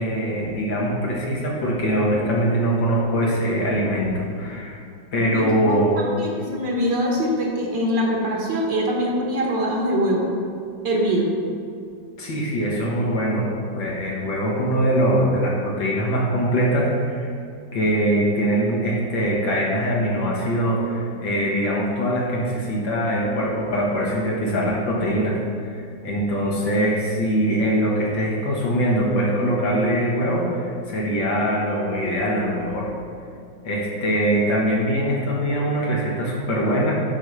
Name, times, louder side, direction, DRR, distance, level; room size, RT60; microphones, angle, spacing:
voice 1, 0.0-4.8 5.1-6.1 12.2-17.3 17.7-32.9 33.6-37.1, equal, 80° left, -4 dB, 2.1 m, -22 dB
voice 2, 5.3-10.3 10.8-11.4 26.4-26.5, equal, 70° right, -2 dB, 1.7 m, -23 dB
9.9 x 3.3 x 5.5 m, 2.4 s
omnidirectional pair, 2.1 m